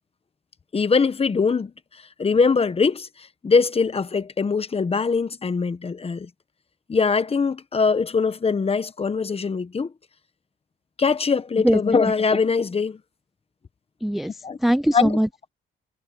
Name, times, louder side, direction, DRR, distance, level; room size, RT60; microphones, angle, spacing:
voice 1, 0.7-1.7 2.2-3.1 3.4-6.3 6.9-9.9 11.0-13.0 14.4-14.6 14.9-15.1, left 5 dB, 30° left, 1.2 m, -22 dB
voice 2, 14.0-15.5, right 1 dB, ahead, 0.3 m, -22 dB
cardioid pair, 90°, 20 cm